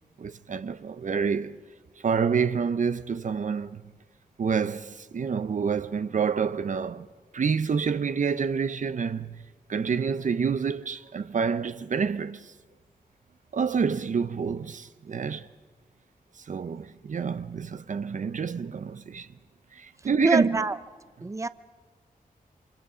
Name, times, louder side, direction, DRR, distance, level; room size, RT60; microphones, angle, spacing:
voice 1, 0.2-1.6 2.0-3.8 4.4-7.1 7.3-12.5 13.5-15.5 16.4-19.3 19.7-20.6, right 6 dB, 55° right, 0.7 m, -28 dB
voice 2, 20.2-20.8 21.2-21.5, right 3 dB, 20° right, 0.7 m, -25 dB
29.0 x 25.5 x 5.0 m
cardioid pair, 80°, 15 cm